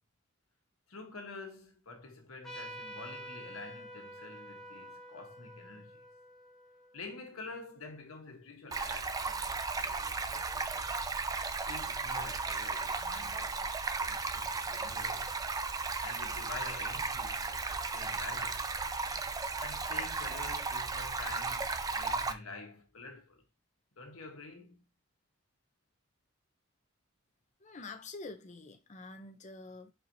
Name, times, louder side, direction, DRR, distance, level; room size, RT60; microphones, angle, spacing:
voice 1, 0.9-6.0 6.9-10.9 11.6-15.4 16.0-18.7 19.6-23.4 24.0-24.9, left 3 dB, 85° left, 1.3 m, -48 dB
Trumpet, 2.4-7.5, equal, ahead, 1.1 m, -48 dB
Stream, 8.7-22.3, right 4 dB, 15° right, 0.3 m, -35 dB
voice 2, 27.6-29.9, left 3 dB, 35° left, 0.6 m, -47 dB
4.4 x 4.3 x 2.7 m
head